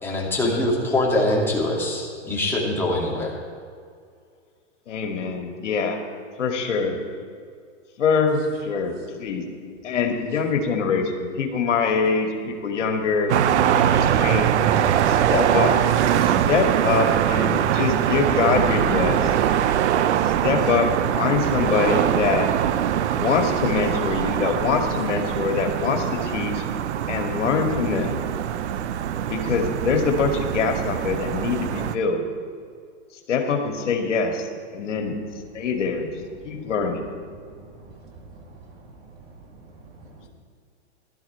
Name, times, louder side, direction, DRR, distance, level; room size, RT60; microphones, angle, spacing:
voice 1, 0.0-3.3, left 1 dB, 5° left, -4 dB, 2.6 m, -23 dB
voice 2, 4.9-6.0 6.4-7.0 8.0-9.5 9.8-13.4 13.8-14.5 15.1-15.8 16.2-19.3 20.2-22.5 23.1-26.6 27.1-28.2 29.3-32.2 33.3-35.2 35.5-36.1 36.4-37.0, left 5 dB, 80° left, 3 dB, 2.2 m, -24 dB
sound 1, 13.3-32.0, right 10 dB, 70° right, 0.8 m, -22 dB
voice 3, 37.4-40.3, right 3 dB, 40° right, 3 dB, 2.3 m, -47 dB
16.0 x 12.5 x 4.5 m, 2.2 s
hypercardioid pair, 135°, 36 cm